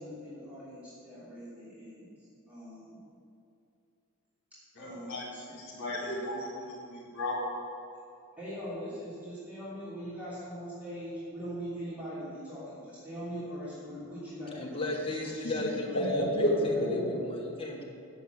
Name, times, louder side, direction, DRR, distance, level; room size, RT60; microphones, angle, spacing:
voice 1, 0.0-2.1 2.5-3.0 4.8-5.5 8.4-14.9 15.2-15.9 16.7-17.2, equal, 5° right, -12 dB, 3.0 m, -41 dB
voice 2, 4.8-5.2 5.5-7.4 16.1-16.5 16.8-17.1, equal, 60° left, -6 dB, 1.9 m, -33 dB
voice 3, 14.5-17.8, left 1 dB, 25° left, -1 dB, 1.4 m, -35 dB
8.2 x 7.0 x 8.0 m, 2.5 s
head